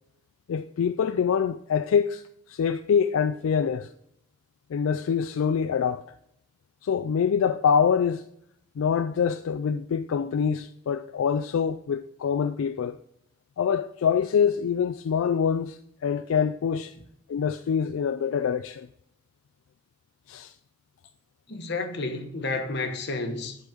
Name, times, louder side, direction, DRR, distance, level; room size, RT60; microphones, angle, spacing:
voice 1, 0.5-3.9 4.7-6.1 6.8-8.3 8.8-13.0 13.6-16.9 17.3-18.9 20.3-20.5, left 7 dB, 75° left, 0.3 m, -25 dB
voice 2, 21.5-23.6, left 3 dB, 50° left, 1.0 m, -31 dB
10.5 x 4.0 x 4.9 m
head